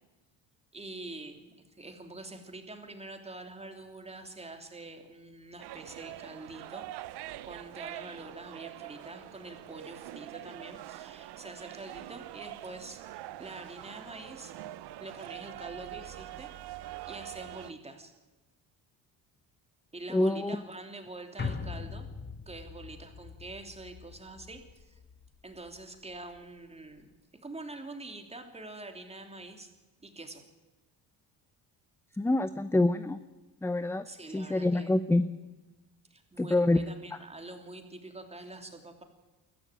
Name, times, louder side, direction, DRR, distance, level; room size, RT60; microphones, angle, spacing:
voice 1, 0.7-6.9 7.4-14.5 15.0-16.5 17.1-18.1 19.9-22.1 22.5-25.0 25.4-27.1 27.4-29.7 30.0-30.4 34.0-34.9 36.1-39.0, right 2 dB, 15° right, 5 dB, 3.0 m, -45 dB
sound 1, 5.6-17.7, right 15 dB, 80° right, 0.9 m, -44 dB
voice 2, 20.1-20.6 32.2-33.2 33.6-34.0 34.3-35.3 36.4-36.8, left 2 dB, 5° left, 12 dB, 0.6 m, -26 dB
sound 2, 21.4-25.8 26.2-26.3, left 5 dB, 25° left, 1.6 m, -41 dB
21.0 x 14.0 x 9.1 m, 1.2 s
cardioid pair, 105°, 39 cm